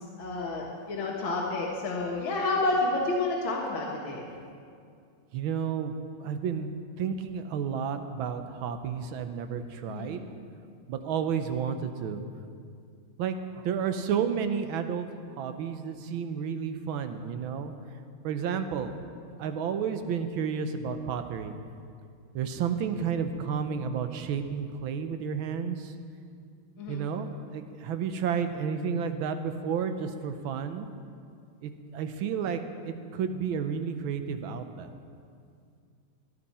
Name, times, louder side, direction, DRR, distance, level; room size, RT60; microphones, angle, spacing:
voice 1, 0.2-4.3 9.9-10.1 26.8-27.0, left 2 dB, 90° left, -2 dB, 2.1 m, -29 dB
voice 2, 5.3-6.7 7.0-10.2 10.9-12.2 13.2-15.1 15.4-17.7 18.2-18.9 19.4-21.6 22.3-25.9 26.9-30.9 31.6-34.9, right 7 dB, 80° right, 8 dB, 1.6 m, -31 dB
17.0 x 11.0 x 4.3 m, 2.3 s
omnidirectional pair, 2.2 m